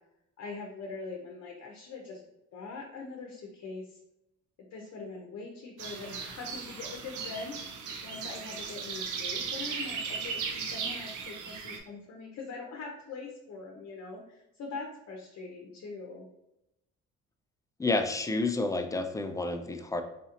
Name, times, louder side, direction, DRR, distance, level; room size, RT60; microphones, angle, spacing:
voice 1, 0.4-2.2 2.5-4.0 4.6-7.6 8.0-16.3, left 3 dB, 55° left, 1 dB, 0.7 m, -42 dB
sound 1, 5.8-11.8, right 5 dB, 80° right, 0.6 m, -37 dB
voice 2, 17.8-20.0, left 2 dB, 10° left, 7 dB, 0.4 m, -30 dB
4.2 x 2.8 x 2.5 m, 0.86 s
cardioid pair, 85°, 30 cm